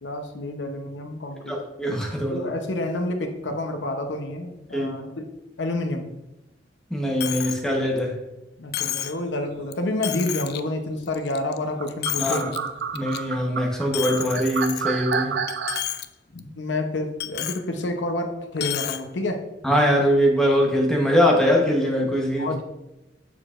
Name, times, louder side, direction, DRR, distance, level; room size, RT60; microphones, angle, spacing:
voice 1, 0.0-1.6 2.3-5.3 5.6-6.1 8.6-12.5 16.3-19.4 22.4-22.6, left 1 dB, 85° left, 6 dB, 0.8 m, -29 dB
voice 2, 1.4-2.5 4.7-4.9 6.9-8.2 12.2-12.5 12.9-15.4 19.6-22.6, equal, 5° left, -1 dB, 1.0 m, -22 dB
Coin (dropping), 7.2-7.6 8.0-8.1 8.7-9.2 9.7-9.8 10.0-10.6 11.1-11.6 11.9-12.6 13.0-13.2 13.9-15.1 15.5-16.1 16.4-16.5 17.2-17.6 18.6-19.0, left 12 dB, 60° left, 0.4 m, -30 dB
sound 1, 11.8-15.8, right 6 dB, 75° right, 0.5 m, -29 dB
6.9 x 6.6 x 2.5 m, 0.94 s
head